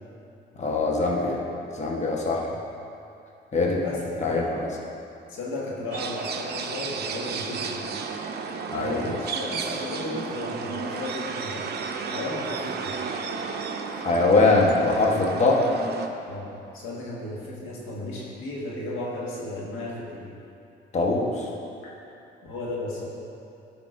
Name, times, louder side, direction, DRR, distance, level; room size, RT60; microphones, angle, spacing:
voice 1, 0.6-1.4 1.7-2.4 3.5-3.8 4.2-4.4 8.7-8.9 14.0-15.6 20.9-21.4, left 3 dB, 35° left, -2 dB, 1.1 m, -22 dB
voice 2, 3.6-4.6 5.3-7.9 8.8-11.6 12.1-12.9 16.3-20.3 21.8-21.9 22.4-23.1, left 2 dB, 90° left, -4 dB, 1.6 m, -34 dB
sound 1, 5.9-16.1, right 5 dB, 55° right, 0.6 m, -33 dB
13.0 x 5.8 x 2.5 m, 2.6 s
cardioid pair, 90°, 20 cm